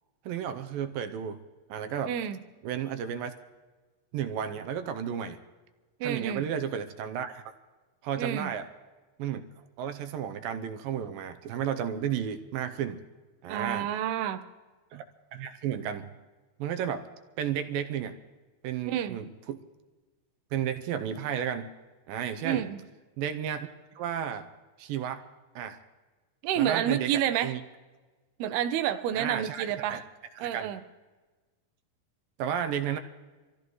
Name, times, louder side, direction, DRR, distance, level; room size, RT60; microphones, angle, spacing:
voice 1, 0.3-1.4 1.7-2.1 2.6-3.3 4.1-5.4 6.0-7.4 8.0-8.7 9.2-9.4 9.8-13.0 13.4-13.9 14.9-15.0 15.3-16.1 16.6-17.1 17.4-18.2 18.6-19.6 20.5-21.7 22.1-22.7 23.2-23.7 24.0-24.5 24.8-25.2 25.6-25.8 26.6-27.6 29.1-30.0 30.4-30.7 32.4-33.0, right 9 dB, 75° right, 8 dB, 2.4 m, -33 dB
voice 2, 2.1-2.4 6.0-6.5 8.2-8.5 13.5-14.5 18.9-19.2 22.4-22.8 26.4-27.6 28.4-30.0 30.4-30.8, right 10 dB, 90° right, 10 dB, 2.8 m, -29 dB
26.0 x 15.0 x 3.1 m, 1.3 s
omnidirectional pair, 4.5 m